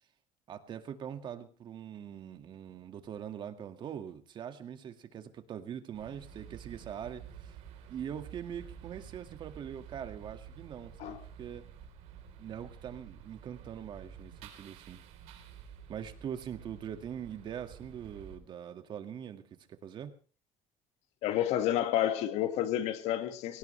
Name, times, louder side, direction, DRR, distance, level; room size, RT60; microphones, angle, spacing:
voice 1, 0.5-7.6 7.9-11.6 12.4-15.0 15.9-20.1, right 9 dB, 45° right, 2.1 m, -42 dB
sound 1, 5.9-18.4, right 8 dB, 80° right, 4.1 m, -50 dB
voice 2, 21.2-23.6, left 11 dB, 75° left, 2.1 m, -30 dB
23.5 x 17.5 x 3.4 m
cardioid pair, 140°, 11 cm